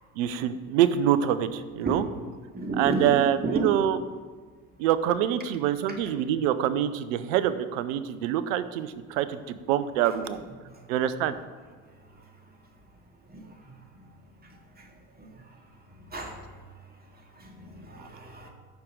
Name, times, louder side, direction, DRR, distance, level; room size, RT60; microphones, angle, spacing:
voice 1, 0.2-2.0 2.8-4.0 4.8-10.4 10.9-11.3, right 10 dB, 70° right, 13 dB, 0.8 m, -25 dB
voice 2, 1.8-2.2 2.5-3.8 5.9-6.1 10.0-10.5 11.2-11.3 13.3-13.6 14.4-14.9 15.2-15.3 16.0-16.4 17.4-18.5, right 3 dB, 20° right, 1 dB, 2.2 m, -33 dB
14.5 x 6.0 x 3.8 m, 1.5 s
hypercardioid pair, 70°, 41 cm